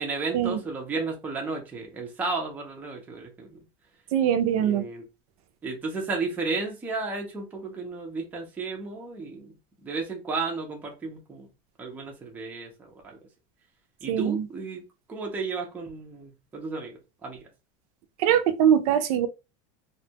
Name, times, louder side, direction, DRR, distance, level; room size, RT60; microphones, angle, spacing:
voice 1, 0.0-3.6 4.6-5.0 5.6-9.5 9.8-11.5 11.8-12.7 13.0-13.2 14.0-14.8 15.1-17.4, right 3 dB, 10° right, 0.4 m, -33 dB
voice 2, 4.1-4.8 14.1-14.5 18.2-19.3, right 9 dB, 65° right, 0.4 m, -22 dB
2.5 x 2.2 x 2.7 m
supercardioid pair, 175°, 20 cm